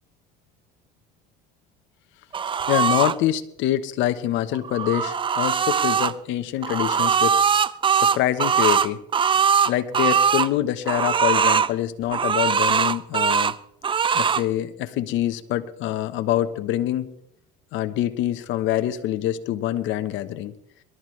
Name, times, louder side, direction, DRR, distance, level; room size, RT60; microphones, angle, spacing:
sound 1, 2.3-3.1 4.5-6.1 6.6-10.5 10.9-11.7 12.1-13.5 13.8-14.4, right 7 dB, 25° right, 0.5 m, -21 dB
voice 1, 2.7-7.4 7.9-9.0 9.7-13.5 14.1-17.1 17.7-20.5, left 13 dB, 65° left, 10 dB, 1.1 m, -25 dB
22.5 x 12.5 x 3.3 m, 0.72 s
supercardioid pair, 100°, 21 cm